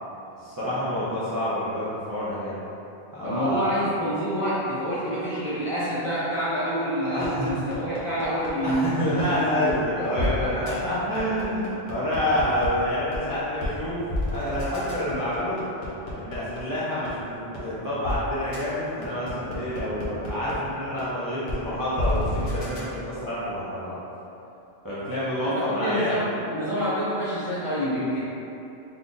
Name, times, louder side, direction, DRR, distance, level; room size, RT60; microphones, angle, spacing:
voice 1, 0.4-2.5 3.1-3.7 7.1-7.5 8.3-8.4 8.6-14.0 14.3-15.6 16.2-24.0 24.8-26.2, left 1 dB, 30° right, -11 dB, 0.4 m, -28 dB
voice 2, 3.2-10.7 25.4-28.2, equal, 40° left, -11 dB, 0.5 m, -28 dB
sound 1, 7.2-8.7 9.2-9.3 9.7-9.8 10.2-10.3 10.7-10.8 11.1-12.7 13.1-13.2 13.6-13.7 14.1-16.6 17.1-17.2 17.5-17.6 18.0-18.2 18.5-18.6 19.0-20.5 21.0-21.1 21.5-21.6 22.0-22.8, left 1 dB, 70° left, 0.9 m, -29 dB
2.6 x 2.5 x 3.7 m, 2.9 s
omnidirectional pair, 1.1 m